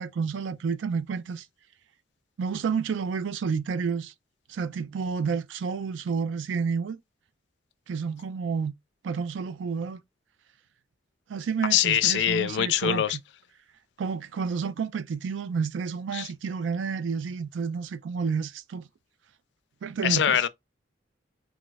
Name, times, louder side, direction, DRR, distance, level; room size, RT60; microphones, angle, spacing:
voice 1, 0.0-1.5 2.4-4.1 4.5-7.0 7.9-8.7 9.0-10.0 11.3-13.2 14.0-18.9 19.8-20.4, right 5 dB, 85° right, 0.4 m, -30 dB
voice 2, 11.7-13.2 16.1-16.3 20.0-20.5, left 10 dB, 70° left, 0.3 m, -23 dB
2.3 x 2.3 x 3.9 m
head